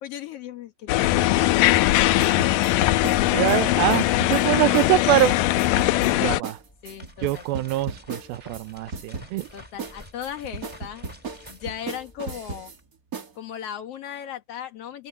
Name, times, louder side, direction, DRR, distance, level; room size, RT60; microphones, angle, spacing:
voice 1, 0.0-2.6 6.8-7.5 9.5-11.1 11.5-12.7 13.4-15.1, left 9 dB, 60° left, 1.7 m, -37 dB
sound 1, 0.9-6.4, left 16 dB, 80° left, 2.1 m, -20 dB
sound 2, 2.2-5.3 5.6-6.1 6.4-6.6 6.9-8.6 8.9-9.5 9.8-12.8 13.1-13.3, right 4 dB, 35° right, 1.6 m, -36 dB
voice 2, 3.3-5.4 6.2-6.6 7.2-9.5, right 16 dB, 80° right, 2.6 m, -23 dB
sound 3, 6.6-12.8, left 1 dB, 10° left, 3.4 m, -49 dB
omnidirectional pair, 4.3 m